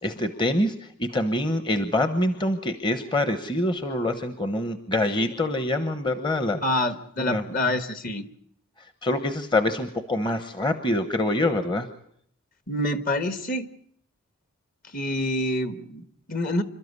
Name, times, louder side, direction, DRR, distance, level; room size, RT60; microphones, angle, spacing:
voice 1, 0.0-6.6 7.2-7.7 9.0-11.9, left 1 dB, 20° left, 9 dB, 1.0 m, -25 dB
voice 2, 6.6-8.2 12.7-13.7 14.9-16.6, left 1 dB, 40° left, 10 dB, 1.4 m, -27 dB
28.0 x 13.0 x 9.6 m, 0.69 s
head